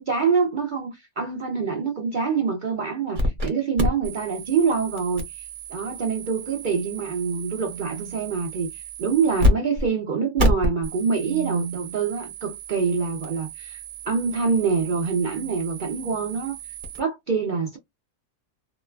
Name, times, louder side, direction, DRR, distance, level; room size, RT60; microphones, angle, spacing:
voice 1, 0.0-16.6 17.0-17.8, right 5 dB, 80° right, 0.4 m, -25 dB
sound 1, 3.0-3.4 6.6-8.4 10.5-12.2 14.2-16.6, right 7 dB, 60° right, 0.8 m, -40 dB
sound 2, 3.1-3.5 3.8-9.5 9.8-9.9 10.4-17.0, left 1 dB, 35° right, 1.0 m, -29 dB
2.8 x 2.2 x 2.3 m
omnidirectional pair, 1.6 m